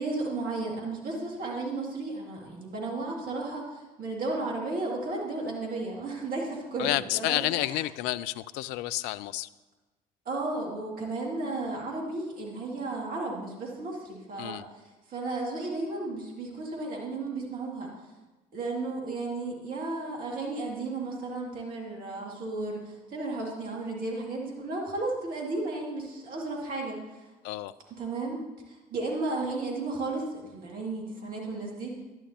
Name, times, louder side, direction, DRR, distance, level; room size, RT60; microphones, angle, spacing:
voice 1, 0.0-7.7 10.3-14.6 15.1-17.9 18.5-27.2 28.0-31.9, right 2 dB, 45° right, -1 dB, 2.4 m, -34 dB
voice 2, 6.8-9.5 14.4-14.6 27.4-27.7, left 16 dB, 60° left, 17 dB, 0.4 m, -30 dB
11.0 x 10.5 x 2.9 m, 1.1 s
figure-of-eight pair, 55°, 20 cm